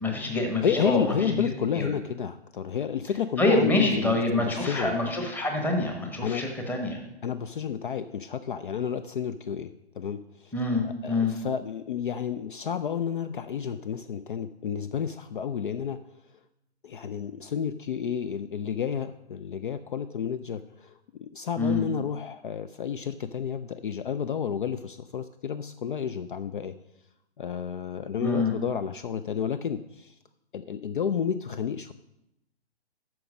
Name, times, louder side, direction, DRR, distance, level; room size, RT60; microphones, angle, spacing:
voice 1, 0.0-1.9 3.4-7.0 10.5-11.3 21.6-21.9 28.2-28.5, left 2 dB, 5° left, 3 dB, 1.0 m, -26 dB
voice 2, 0.6-5.0 6.2-6.4 7.2-10.5 10.8-16.0 16.8-20.9 21.2-26.7 27.4-30.1 30.5-31.9, left 8 dB, 50° left, 12 dB, 0.5 m, -31 dB
9.5 x 6.0 x 6.2 m, 0.84 s
figure-of-eight pair, 130°, 33 cm